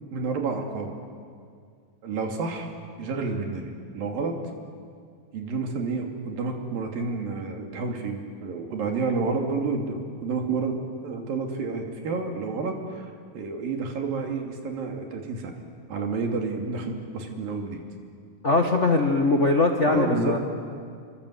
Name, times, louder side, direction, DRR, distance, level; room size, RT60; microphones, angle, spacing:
voice 1, 0.1-0.9 2.0-2.7 3.0-4.4 5.3-15.5 15.9-17.8 19.9-20.4, right 4 dB, 80° right, 2 dB, 4.4 m, -30 dB
voice 2, 18.4-20.4, left 3 dB, 65° left, 2 dB, 0.7 m, -21 dB
29.0 x 24.0 x 8.2 m, 2.2 s
omnidirectional pair, 4.0 m